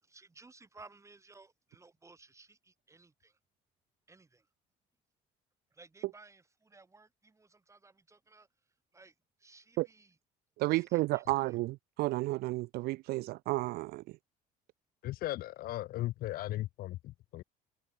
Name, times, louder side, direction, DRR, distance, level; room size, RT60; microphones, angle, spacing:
voice 1, 0.0-3.4 4.1-4.5 5.7-8.5 8.9-10.2 10.7-11.6, right 3 dB, 15° right, 5.8 m, -58 dB
voice 2, 10.6-14.0, right 20 dB, 65° right, 0.4 m, -32 dB
voice 3, 15.0-17.4, left 16 dB, 60° left, 0.7 m, -37 dB
cardioid pair, 105°, 17 cm